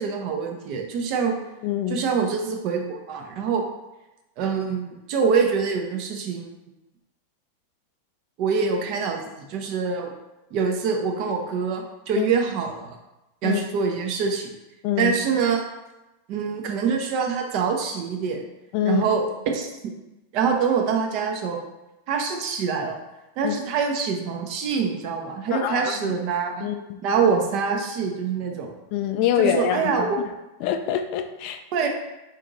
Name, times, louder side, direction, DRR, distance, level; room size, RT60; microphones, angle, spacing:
voice 1, 0.0-1.4 1.9-3.6 4.4-6.5 8.4-10.1 10.5-13.0 13.4-14.5 15.0-15.6 16.3-18.5 18.8-19.7 20.3-21.6 22.1-23.0 23.4-26.7 27.0-28.7 29.4-30.2 31.7-31.9, right 5 dB, 45° right, 3 dB, 0.6 m, -25 dB
voice 2, 1.6-2.0 12.2-12.3 13.4-13.6 14.8-15.1 18.7-19.0 23.4-23.5 25.5-26.1 26.6-27.0 28.9-30.1 30.6-31.6, left 10 dB, 45° left, 7 dB, 0.4 m, -25 dB
4.0 x 2.7 x 3.7 m, 1.0 s
figure-of-eight pair, 90°, 0 cm